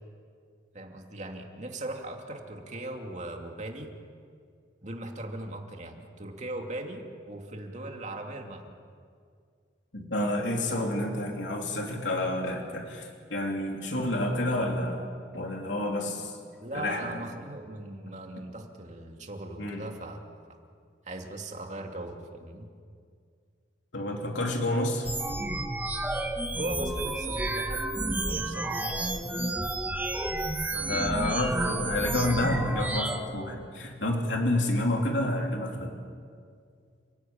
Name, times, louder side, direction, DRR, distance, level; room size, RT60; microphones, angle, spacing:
voice 1, 0.7-3.9 4.8-8.7 16.6-20.2 21.0-22.7 26.6-27.8 28.2-29.4, right 1 dB, 40° right, 2 dB, 2.7 m, -39 dB
voice 2, 9.9-15.1 15.3-16.4 16.7-17.3 19.6-19.8 23.9-25.1 30.7-35.9, left 1 dB, 80° left, 1 dB, 3.2 m, -29 dB
sound 1, 25.0-33.2, right 2 dB, 10° right, 1.5 m, -31 dB
30.0 x 17.0 x 8.9 m, 2.2 s
head